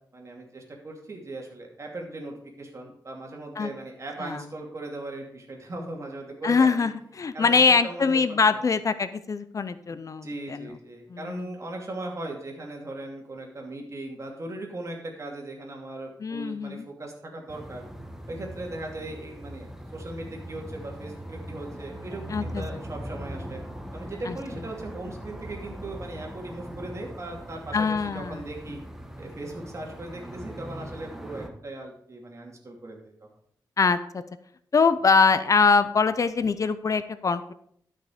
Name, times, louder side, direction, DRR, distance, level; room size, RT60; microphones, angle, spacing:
voice 1, 0.1-6.9 7.3-8.6 9.9-17.8 18.3-23.6 23.9-28.8 29.2-33.1, right 2 dB, 40° right, 0 dB, 2.6 m, -38 dB
voice 2, 6.4-10.7 11.1-11.4 16.2-16.8 22.3-22.6 24.3-24.4 27.7-28.4 33.8-34.2 34.7-37.5, left 5 dB, 50° left, 12 dB, 0.6 m, -23 dB
sound 1, 17.5-31.5, equal, 5° right, 1.3 m, -40 dB
12.5 x 6.2 x 5.0 m, 0.66 s
wide cardioid pair, 115°, 7 cm